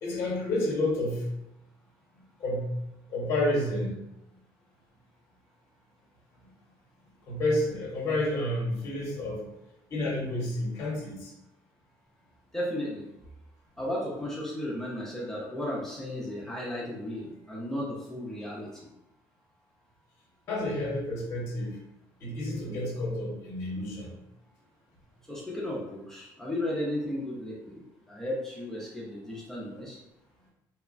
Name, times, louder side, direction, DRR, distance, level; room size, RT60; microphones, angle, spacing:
voice 1, 0.0-1.3 2.4-2.7 3.1-4.0 7.3-9.4 9.9-11.3 20.5-21.8 22.2-24.1, left 1 dB, 35° left, -3 dB, 0.8 m, -30 dB
voice 2, 12.5-13.1 13.8-18.7 25.3-27.8 28.1-30.0, left 1 dB, 5° left, -6 dB, 0.4 m, -34 dB
2.9 x 2.2 x 2.4 m, 0.89 s
cardioid pair, 160°, 8 cm